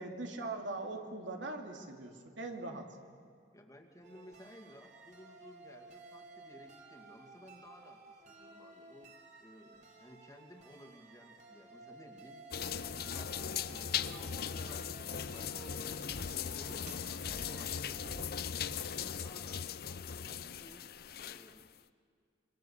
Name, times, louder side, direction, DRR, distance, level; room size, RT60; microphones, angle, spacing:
voice 1, 0.0-2.9, right 2 dB, 75° right, 3 dB, 2.6 m, -41 dB
voice 2, 3.5-9.1 9.4-12.4 12.9-17.0 17.5-18.3 18.9-20.9 21.2-21.7, equal, 15° left, 3 dB, 2.2 m, -56 dB
sound 1, 4.0-18.2, right 2 dB, 35° right, 2.8 m, -54 dB
sound 2, 12.5-21.6, left 8 dB, 50° left, 0.6 m, -39 dB
27.5 x 24.0 x 7.2 m, 2.3 s
head